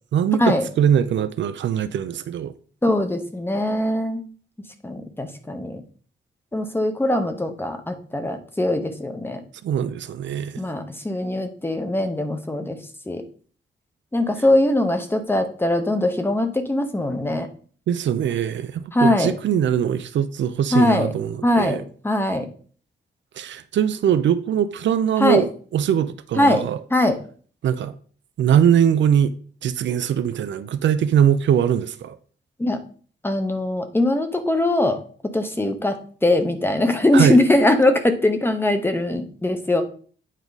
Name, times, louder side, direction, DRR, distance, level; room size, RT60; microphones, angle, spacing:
voice 1, 0.1-2.5 9.6-10.6 17.9-21.8 23.4-26.8 27.6-27.9 28.4-29.3 29.6-32.2 37.1-37.4, right 9 dB, 70° right, 0.5 m, -21 dB
voice 2, 2.8-4.2 4.8-5.8 6.5-9.4 10.6-12.8 13.1-13.2 14.1-17.5 18.9-19.3 20.7-21.1 21.4-22.5 25.2-25.4 26.4-26.6 26.9-27.2 32.6-32.8 33.2-35.0 35.3-39.8, left 1 dB, 10° left, 0.8 m, -21 dB
9.1 x 4.7 x 4.0 m
wide cardioid pair, 170°, 20 cm